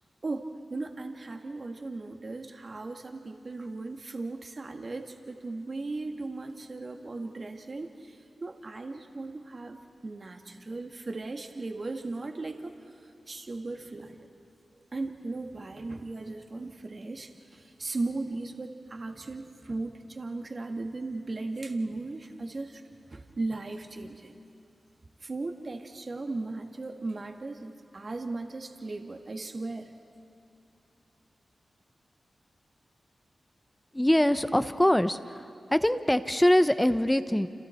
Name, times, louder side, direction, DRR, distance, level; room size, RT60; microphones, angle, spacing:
voice 1, 0.2-9.8 10.0-14.2 14.9-22.8 23.1-24.4 25.2-29.9, right 3 dB, 50° right, 4 dB, 1.8 m, -37 dB
voice 2, 33.9-35.2 35.7-37.5, left 1 dB, 10° left, 11 dB, 1.0 m, -23 dB
29.5 x 27.5 x 4.5 m, 2.7 s
cardioid pair, 50°, 0 cm